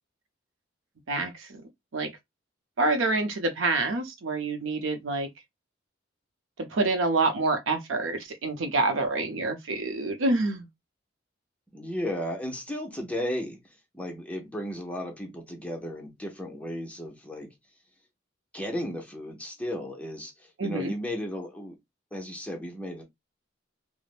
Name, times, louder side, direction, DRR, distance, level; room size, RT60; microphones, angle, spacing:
voice 1, 1.1-1.5 1.9-2.1 2.8-5.3 6.7-10.7 20.6-20.9, right 3 dB, 75° right, 0.6 m, -27 dB
voice 2, 11.7-13.6 13.9-17.5 18.5-21.8 22.1-23.0, equal, 5° left, 0.7 m, -34 dB
3.3 x 2.0 x 2.4 m
head